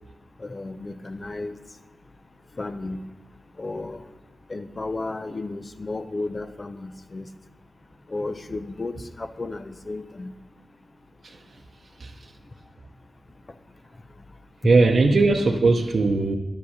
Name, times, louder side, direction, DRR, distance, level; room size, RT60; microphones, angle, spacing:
voice 1, 0.4-1.6 2.6-3.0 3.6-4.0 4.5-7.3 8.1-10.3, left 2 dB, 45° left, 10 dB, 0.7 m, -33 dB
voice 2, 14.6-16.4, right 3 dB, 70° right, 1 dB, 0.7 m, -19 dB
10.5 x 6.0 x 6.5 m, 1.2 s
cardioid pair, 55°, 0 cm